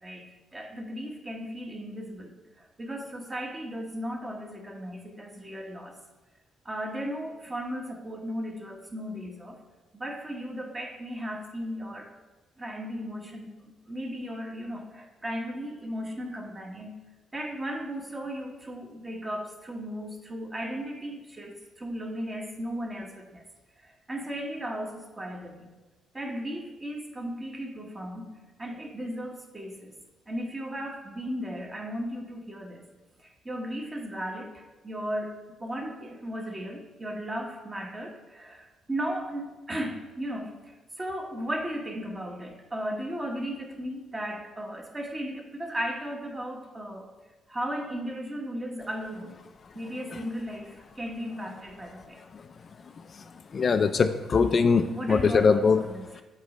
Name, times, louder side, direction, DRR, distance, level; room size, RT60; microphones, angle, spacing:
voice 1, 0.0-6.0 6.6-9.6 9.9-12.1 12.6-13.5 13.9-17.0 17.3-23.4 23.8-25.7 26.1-28.3 28.6-30.0 30.3-32.9 33.2-47.1 47.5-49.4 49.7-52.2 54.8-56.2, equal, 20° right, 2 dB, 1.0 m, -36 dB
voice 2, 53.5-55.8, left 5 dB, 45° left, 9 dB, 0.3 m, -22 dB
7.8 x 3.1 x 5.0 m, 1.2 s
cardioid pair, 90°, 0 cm